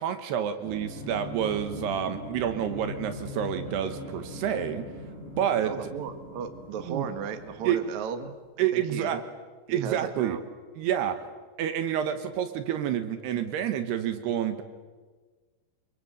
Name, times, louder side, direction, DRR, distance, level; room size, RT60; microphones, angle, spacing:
voice 1, 0.0-4.8 5.4-5.9 6.9-7.1 7.6-7.8 8.6-9.2 9.7-10.4 10.8-11.2 11.6-14.6, right 9 dB, 75° right, 9 dB, 3.1 m, -28 dB
sound 1, 0.6-8.2, left 1 dB, 15° left, 5.4 m, -40 dB
voice 2, 5.6-8.3 8.7-9.2 9.7-10.4, right 7 dB, 55° right, 8 dB, 2.3 m, -35 dB
27.5 x 23.0 x 7.8 m, 1.4 s
omnidirectional pair, 5.1 m